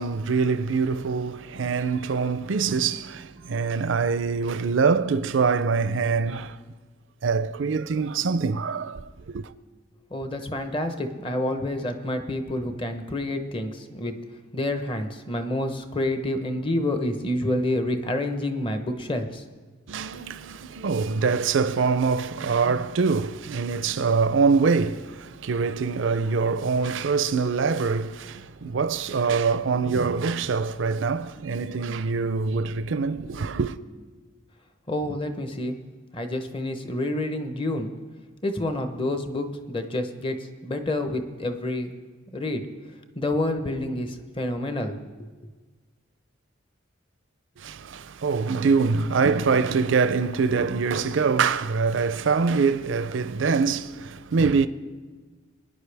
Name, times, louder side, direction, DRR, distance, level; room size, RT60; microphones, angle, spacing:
voice 1, 0.0-6.6 7.2-9.5 19.9-33.8 47.6-54.7, right 5 dB, 70° right, 0.5 m, -24 dB
voice 2, 10.1-14.1 14.5-19.4 34.9-35.8 36.1-37.9 38.4-42.0 42.3-42.6 43.1-45.3, left 1 dB, 25° left, 0.9 m, -28 dB
22.5 x 10.0 x 3.4 m
head